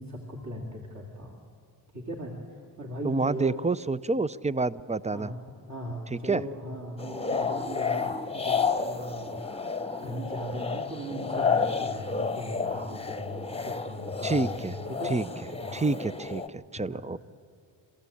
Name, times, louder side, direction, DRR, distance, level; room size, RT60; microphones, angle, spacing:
voice 1, 0.0-1.4 1.9-3.6 5.1-5.4 5.7-9.4 10.0-15.2 15.6-15.8 16.2-16.3 16.9-17.1, equal, 35° right, 0 dB, 3.0 m, -38 dB
voice 2, 3.0-5.3 6.1-6.4 14.2-14.8 15.1-15.2 15.7-17.2, right 3 dB, 15° right, 17 dB, 0.6 m, -28 dB
sound 1, 7.0-16.5, left 5 dB, 10° left, 1.1 m, -31 dB
28.0 x 14.5 x 8.6 m, 2.4 s
cardioid pair, 50°, 46 cm